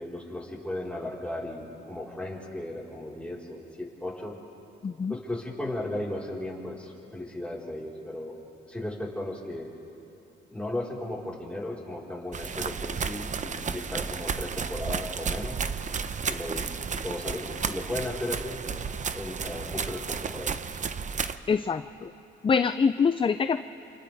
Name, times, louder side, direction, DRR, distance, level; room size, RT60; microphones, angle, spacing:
voice 1, 0.0-4.3 5.1-8.4 8.7-9.7 10.5-15.6 16.3-18.6 19.1-20.8, left 1 dB, 5° left, -5 dB, 4.6 m, -36 dB
voice 2, 4.8-5.1 21.5-22.1 22.4-23.6, left 5 dB, 25° left, 11 dB, 0.5 m, -25 dB
sound 1, 12.3-21.4, right 6 dB, 40° right, 0.8 m, -32 dB
29.0 x 28.0 x 3.5 m, 2.9 s
cardioid pair, 90°, 20 cm